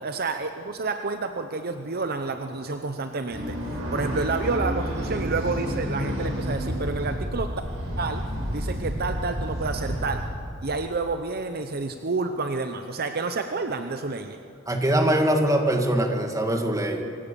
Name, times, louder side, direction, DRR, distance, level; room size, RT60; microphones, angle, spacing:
voice 1, 0.0-7.5 8.0-8.2 8.5-10.2 10.6-14.4, right 3 dB, 50° right, 7 dB, 0.9 m, -29 dB
sound 1, 3.3-10.3, equal, 75° right, 7.6 m, -30 dB
voice 2, 14.7-17.0, right 1 dB, 15° right, 3 dB, 2.1 m, -22 dB
25.5 x 16.0 x 7.0 m, 2.5 s
head